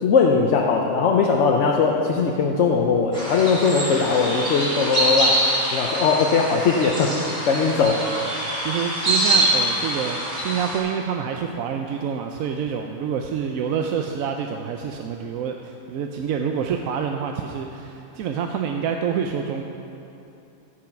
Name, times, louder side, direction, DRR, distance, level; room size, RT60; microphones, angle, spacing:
voice 1, 0.0-5.4 5.7-7.2 7.4-8.0, left 5 dB, 55° left, 0 dB, 0.9 m, -20 dB
sound 1, 3.1-10.8, right 1 dB, 25° right, 3.6 m, -24 dB
voice 2, 8.6-19.6, right 7 dB, 70° right, 3 dB, 0.9 m, -27 dB
12.5 x 8.7 x 5.9 m, 2.8 s
omnidirectional pair, 1.7 m